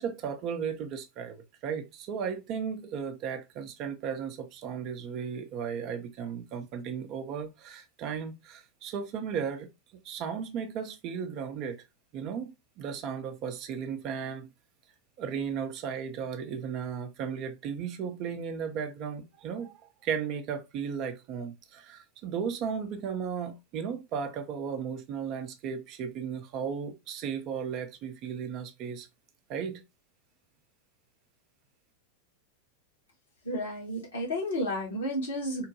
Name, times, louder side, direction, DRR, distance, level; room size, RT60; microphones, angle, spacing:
voice 1, 0.0-9.7 10.0-11.8 12.1-14.5 15.2-19.7 20.0-29.1 29.5-29.8, right 7 dB, 40° right, 0.6 m, -35 dB
voice 2, 33.4-35.7, equal, 65° left, 1.4 m, -32 dB
3.6 x 2.2 x 2.8 m
figure-of-eight pair, 90°, 0 cm